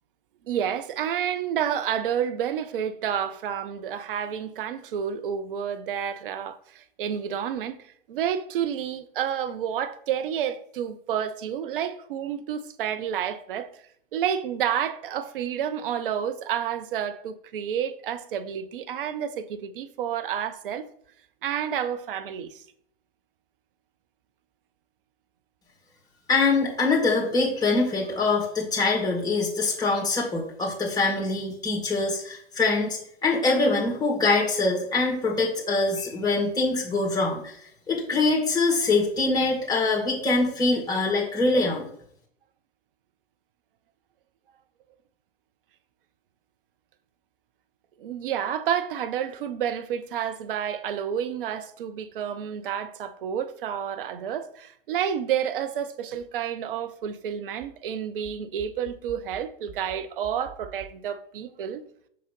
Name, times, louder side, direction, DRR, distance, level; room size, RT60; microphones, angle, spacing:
voice 1, 0.5-7.8 8.1-13.7 14.1-20.9 21.4-22.6 48.0-61.8, right 9 dB, 60° right, 0.7 m, -30 dB
voice 2, 26.3-37.6 37.9-41.8, left 3 dB, 10° left, 1.9 m, -24 dB
5.5 x 3.9 x 5.2 m
figure-of-eight pair, 100°, 31 cm